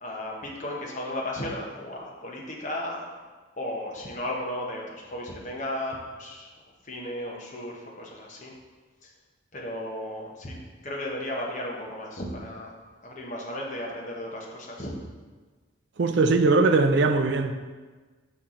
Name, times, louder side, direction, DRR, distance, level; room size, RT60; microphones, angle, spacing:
voice 1, 0.0-3.0 3.6-6.5 6.8-8.5 9.0-9.1 9.5-10.6 10.8-12.8 13.0-15.0, left 1 dB, 35° left, -2 dB, 0.9 m, -35 dB
voice 2, 16.0-17.5, right 3 dB, 55° right, 7 dB, 0.4 m, -20 dB
5.7 x 4.5 x 3.8 m, 1.4 s
head